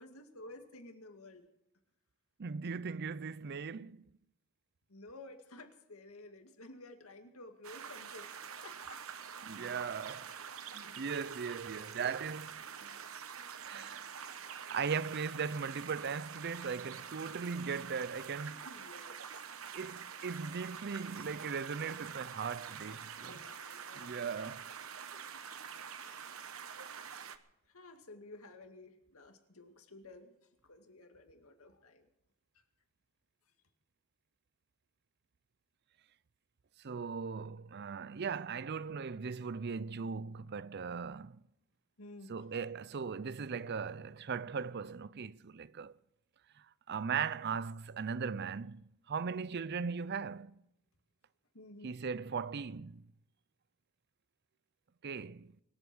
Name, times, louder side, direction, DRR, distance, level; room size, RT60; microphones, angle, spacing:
voice 1, 0.0-1.5 4.9-8.3 8.6-9.0 18.5-19.2 23.2-24.2 25.1-25.4 25.9-26.4 27.7-30.3 30.6-32.1 42.0-42.3 51.5-52.0, left 2 dB, 75° left, 2.2 m, -53 dB
voice 2, 2.4-4.1 9.4-10.3 10.7-13.0 13.7-14.1 14.7-18.6 19.7-23.4 23.9-24.6 36.8-41.4 42.3-45.9 46.9-50.6 51.8-53.0 55.0-55.5, right 6 dB, 50° right, 0.5 m, -38 dB
sound 1, 7.6-27.4, right 7 dB, 65° right, 1.0 m, -46 dB
24.5 x 8.2 x 6.2 m
head